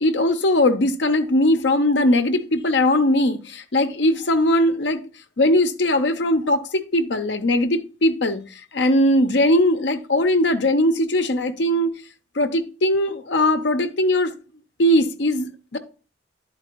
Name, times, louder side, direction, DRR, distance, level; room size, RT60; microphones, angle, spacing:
voice 1, 0.0-5.0 5.4-11.9 12.4-14.3 14.8-15.8, left 1 dB, 70° left, 0.7 m, -20 dB
11.0 x 4.4 x 3.0 m
head